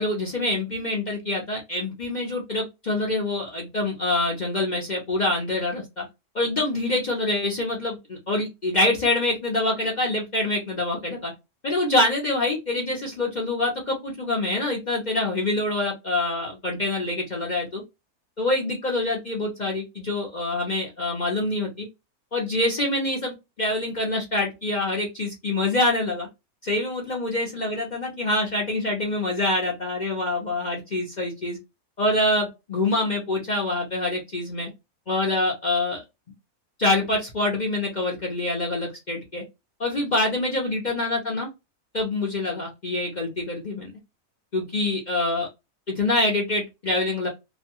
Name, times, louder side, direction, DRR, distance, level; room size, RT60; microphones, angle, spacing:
voice 1, 0.0-6.0 6.3-11.3 11.6-17.8 18.4-21.9 22.3-26.3 26.6-31.6 32.0-34.7 35.1-36.0 36.8-39.4 39.8-41.5 41.9-43.9 44.5-45.5 45.9-47.3, left 2 dB, 50° left, -2 dB, 0.5 m, -25 dB
2.6 x 2.2 x 2.8 m, 0.23 s
omnidirectional pair, 1.6 m